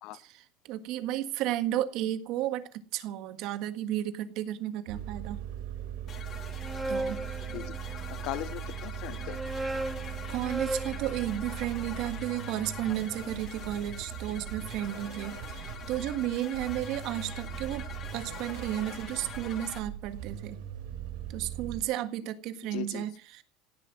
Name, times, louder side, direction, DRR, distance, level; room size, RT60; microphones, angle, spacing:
voice 1, 0.1-5.4 6.9-7.4 10.3-17.9 18.1-20.6 21.3-23.4, right 12 dB, 45° right, 1.7 m, -33 dB
sound 1, 4.9-21.8, right 10 dB, 80° right, 5.9 m, -40 dB
sound 2, 6.1-19.8, left 7 dB, 25° left, 2.5 m, -45 dB
sound 3, 6.4-8.3 9.0-13.2, right 2 dB, 5° right, 0.9 m, -38 dB
voice 2, 8.1-9.4 22.7-23.1, left 17 dB, 50° left, 0.7 m, -38 dB
16.5 x 11.5 x 7.6 m
cardioid pair, 180°, 0 cm